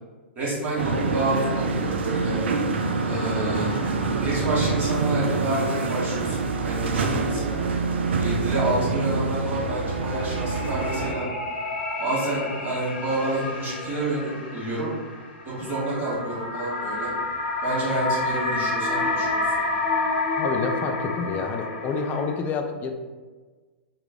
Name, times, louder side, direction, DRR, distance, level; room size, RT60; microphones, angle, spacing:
voice 1, 0.3-2.4 3.1-3.7 4.2-6.4 6.6-7.7 8.2-11.3 12.0-14.9 15.4-17.1 17.6-19.4, right 2 dB, 25° right, -7 dB, 1.5 m, -29 dB
sound 1, 0.8-11.1, right 3 dB, 65° right, 0.4 m, -26 dB
sound 2, 3.1-4.7 5.0-5.1 9.5-22.4, left 2 dB, 55° left, 0.7 m, -30 dB
voice 2, 20.3-22.9, left 5 dB, 25° left, 4 dB, 0.4 m, -28 dB
3.1 x 2.3 x 3.4 m, 1.4 s
figure-of-eight pair, 110°, 6 cm